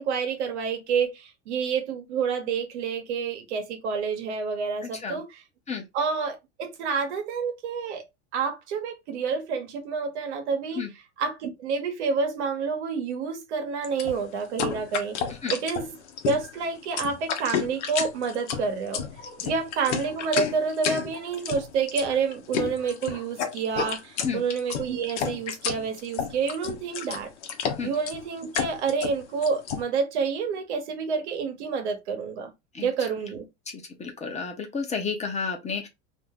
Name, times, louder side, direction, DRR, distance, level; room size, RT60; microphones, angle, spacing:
voice 1, 0.0-5.4 5.9-8.0 8.3-10.9 11.2-15.2 15.5-15.9 16.2-19.0 19.4-27.3 27.8-32.5 32.8-33.4, right 5 dB, 80° right, 1.0 m, -28 dB
voice 2, 4.8-5.2 5.7-5.8 10.8-10.9 15.4-15.5 19.4-19.5 24.2-24.4 27.8-27.9 32.7-32.9 34.0-35.9, left 5 dB, 20° left, 0.7 m, -31 dB
sound 1, 13.8-29.8, left 7 dB, 80° left, 0.8 m, -31 dB
2.6 x 2.1 x 3.5 m
supercardioid pair, 110°, 34 cm